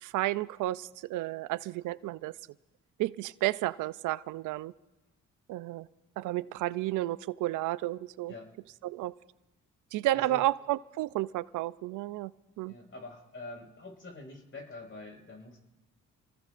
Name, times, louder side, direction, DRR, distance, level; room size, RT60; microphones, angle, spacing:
voice 1, 0.0-2.3 3.0-4.7 5.5-5.9 6.2-8.3 8.8-9.1 9.9-12.3 12.6-12.7, right 16 dB, 85° right, 17 dB, 0.5 m, -32 dB
voice 2, 10.1-10.4 12.7-15.6, left 2 dB, 40° left, 2 dB, 5.1 m, -45 dB
28.5 x 18.5 x 2.5 m, 0.97 s
cardioid pair, 90°, 30 cm